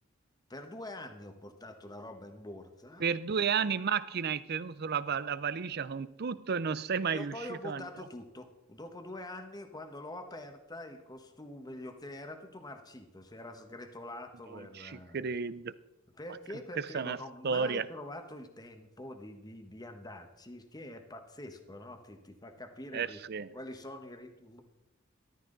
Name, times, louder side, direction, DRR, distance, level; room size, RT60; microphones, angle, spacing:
voice 1, 0.5-3.2 7.1-15.3 16.2-23.2 23.5-24.6, left 1 dB, 20° left, 6 dB, 1.2 m, -45 dB
voice 2, 3.0-7.3 7.6-7.8 14.8-15.7 16.8-17.2 17.4-17.9 22.9-23.5, right 6 dB, 55° right, 16 dB, 0.5 m, -32 dB
13.5 x 13.5 x 3.9 m, 0.98 s
head